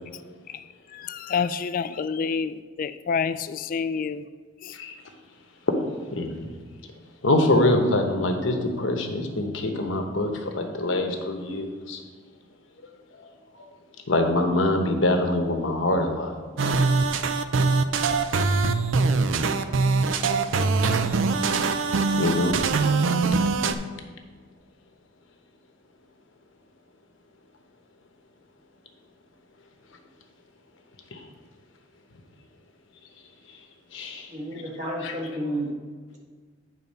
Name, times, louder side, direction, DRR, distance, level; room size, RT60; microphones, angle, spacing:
voice 1, 0.9-4.2 4.6-4.7, left 6 dB, 45° left, 13 dB, 0.3 m, -28 dB
voice 2, 6.1-6.5 7.2-12.0 13.2-13.3 14.1-16.3 22.2-22.7 31.1-31.2 33.9-34.3 34.8-35.2, left 1 dB, 70° left, 4 dB, 1.0 m, -24 dB
sound 1, 16.6-23.7, right 4 dB, 70° right, 0.5 m, -22 dB
voice 3, 20.7-21.2 34.3-35.7, right 1 dB, 40° right, -2 dB, 1.5 m, -32 dB
9.1 x 4.0 x 5.4 m, 1.5 s
head